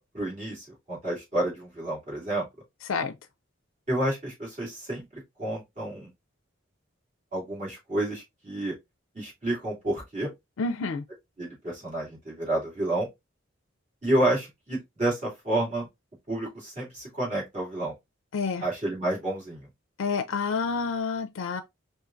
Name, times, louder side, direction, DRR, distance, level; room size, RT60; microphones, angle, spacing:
voice 1, 0.0-2.4 3.9-6.1 7.3-8.7 9.1-10.3 11.4-13.1 14.0-15.9 16.3-17.9 18.6-19.6, right 1 dB, 35° right, 2.5 m, -30 dB
voice 2, 2.8-3.2 10.6-11.0 18.3-18.7 20.0-21.6, left 4 dB, 80° left, 0.4 m, -29 dB
5.0 x 2.6 x 2.4 m
head